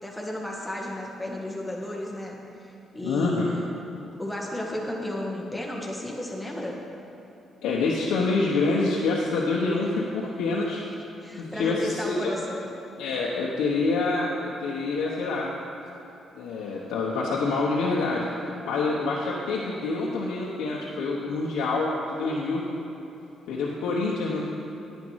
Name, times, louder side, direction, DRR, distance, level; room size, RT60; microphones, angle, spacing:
voice 1, 0.0-2.7 2.9-3.7 4.2-6.8 11.2-12.7, left 1 dB, 5° left, -3 dB, 1.8 m, -33 dB
voice 2, 3.0-3.5 7.6-10.8 11.4-12.3 13.0-15.5 16.3-18.3 18.7-21.9 22.2-22.6 23.5-24.4, left 3 dB, 90° left, -4 dB, 1.1 m, -26 dB
9.7 x 9.4 x 4.8 m, 3.0 s
cardioid pair, 90°, 0 cm